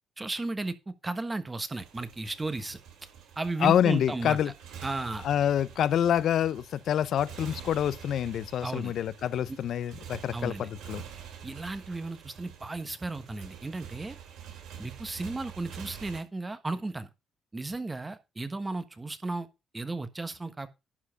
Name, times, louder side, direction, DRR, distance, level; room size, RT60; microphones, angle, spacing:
voice 1, 0.2-0.7 1.0-2.8 3.4-4.4 4.8-5.2 8.6-8.9 9.5-9.6 10.3-10.7 11.4-14.2 14.8-17.1 17.5-19.5 19.7-20.7, right 2 dB, 20° right, 1.3 m, -34 dB
Motorcycle, 1.7-16.2, right 8 dB, 85° right, 2.8 m, -46 dB
voice 2, 3.6-4.5 5.2-11.0, left 10 dB, 70° left, 0.5 m, -27 dB
11.5 x 4.7 x 5.8 m
cardioid pair, 90°, 0 cm